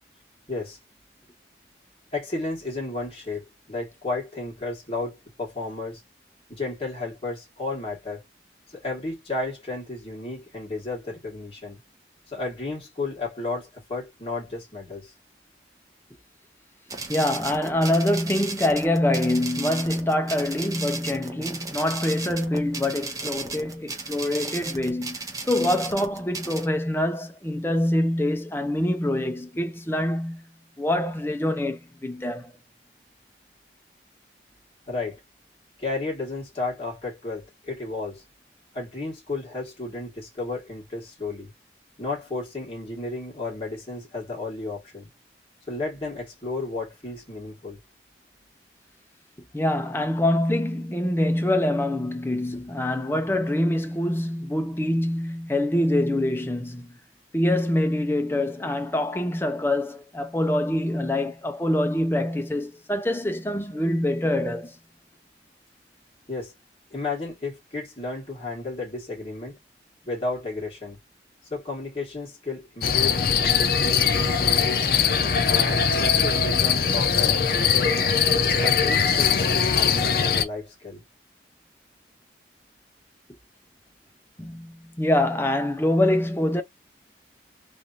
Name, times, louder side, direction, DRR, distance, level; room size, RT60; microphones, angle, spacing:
voice 1, 0.5-0.8 2.1-6.0 6.5-8.2 8.7-11.8 12.3-15.1 34.9-35.2 35.8-38.2 38.7-41.5 42.0-45.1 45.7-47.8 66.3-66.5 66.9-69.6 70.0-71.0 71.5-74.9 75.5-78.0 78.5-81.0, left 3 dB, 30° left, 1.6 m, -33 dB
sound 1, 16.9-26.7, right 3 dB, 20° right, 0.7 m, -35 dB
voice 2, 17.1-30.4 30.8-32.5 49.5-57.0 57.3-64.8 84.4-86.6, left 1 dB, 15° left, 0.5 m, -25 dB
sound 2, 72.8-80.4, left 6 dB, 55° left, 0.6 m, -21 dB
3.2 x 2.5 x 2.5 m
head